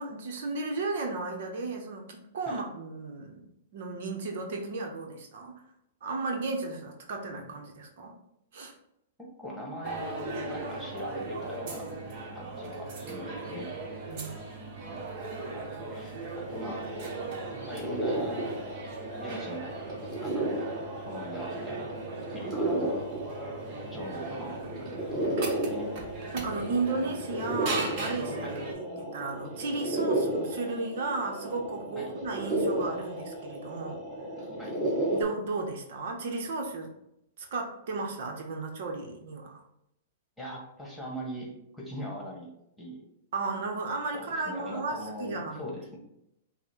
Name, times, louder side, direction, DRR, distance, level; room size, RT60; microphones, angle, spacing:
voice 1, 0.0-3.4 3.7-5.6 6.0-8.1 8.5-8.7 14.1-14.4 26.3-34.0 35.1-36.9 37.4-39.6 43.3-45.7, right 3 dB, 65° right, 2 dB, 0.8 m, -34 dB
voice 2, 9.2-12.0 12.3-13.7 15.5-16.9 17.7-18.6 19.2-19.7 20.2-20.6 21.0-21.8 22.3-23.0 23.9-24.9 25.2-25.9 28.4-28.6 31.9-32.1 34.6-34.7 40.4-42.5 42.8-43.0 44.1-46.0, equal, 5° left, -3 dB, 1.4 m, -41 dB
sound 1, 9.8-28.7, right 3 dB, 45° right, 1.0 m, -38 dB
sound 2, 16.2-35.2, right 1 dB, 20° right, 1.7 m, -34 dB
5.6 x 2.1 x 4.4 m, 0.82 s
hypercardioid pair, 120°, 0 cm